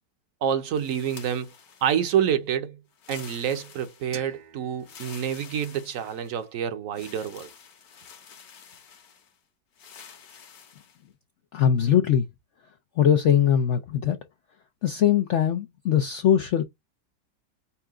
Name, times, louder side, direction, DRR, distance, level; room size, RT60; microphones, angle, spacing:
voice 1, 0.4-1.5 1.8-2.8 3.1-7.5, right 9 dB, 60° right, 1.0 m, -27 dB
sound 1, 0.8-2.3 2.9-4.3 4.8-6.5 6.9-9.3 9.8-11.0, left 7 dB, 60° left, 1.3 m, -48 dB
sound 2, 4.1-7.0, right 8 dB, 90° right, 1.7 m, -49 dB
voice 2, 11.5-12.3 13.0-14.2 14.8-16.6, left 9 dB, 80° left, 0.6 m, -21 dB
5.6 x 2.3 x 3.6 m
omnidirectional pair, 1.9 m